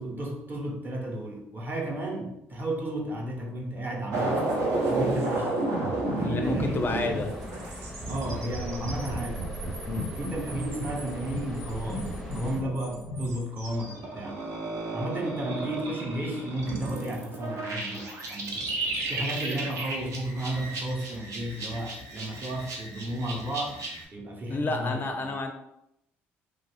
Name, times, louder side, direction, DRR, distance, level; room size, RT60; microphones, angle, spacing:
voice 1, 0.0-5.6 6.2-7.3 8.1-9.5 10.2-14.4 14.9-18.7 19.1-23.8 24.1-25.3, right 1 dB, 30° right, 0 dB, 0.9 m, -33 dB
sound 1, 4.1-24.0, right 2 dB, 60° right, 0.7 m, -33 dB
sound 2, 6.1-14.9, right 1 dB, 75° right, 1.1 m, -43 dB
voice 2, 6.2-7.3 9.9-10.1 24.5-25.5, left 3 dB, 35° left, 5 dB, 0.4 m, -30 dB
sound 3, 6.4-12.6, equal, 5° right, 0.6 m, -41 dB
2.4 x 2.4 x 3.3 m, 0.80 s
hypercardioid pair, 55°, 6 cm